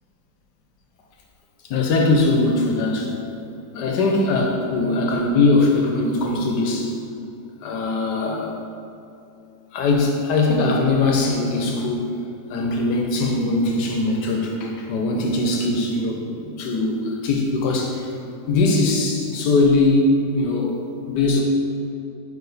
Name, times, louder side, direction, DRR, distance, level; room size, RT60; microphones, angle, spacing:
voice 1, 1.7-3.1 3.7-6.9 7.6-8.6 9.7-12.2 12.5-18.1 18.5-20.8 21.1-21.4, left 2 dB, 70° left, 1 dB, 1.2 m, -21 dB
4.9 x 4.8 x 4.0 m, 2.7 s
omnidirectional pair, 2.0 m